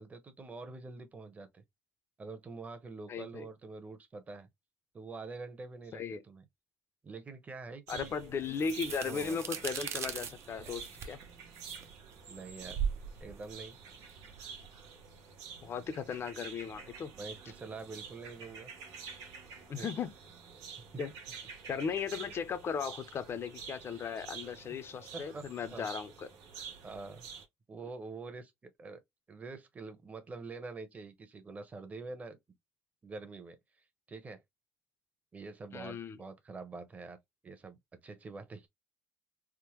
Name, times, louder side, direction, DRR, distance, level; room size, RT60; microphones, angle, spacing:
voice 1, 0.0-1.6 2.2-4.5 4.9-6.4 7.0-8.2 9.0-9.6 12.3-12.8 13.2-13.8 17.1-18.7 19.7-19.9 25.1-25.4 25.7-25.9 26.8-27.3 27.7-29.0 29.3-32.4 33.0-33.6 34.1-34.4 35.3-37.2 37.4-37.8 38.0-38.7, right 3 dB, 25° right, 0.9 m, -45 dB
voice 2, 3.1-3.5 5.9-6.2 7.9-11.2 15.6-17.1 19.7-20.1 21.0-21.1 21.7-26.3 35.7-36.2, left 6 dB, 40° left, 0.6 m, -37 dB
sound 1, 7.9-27.5, right 6 dB, 70° right, 1.3 m, -49 dB
sound 2, 8.0-14.7, right 7 dB, 45° right, 0.6 m, -40 dB
3.6 x 2.1 x 3.0 m
cardioid pair, 110°, 6 cm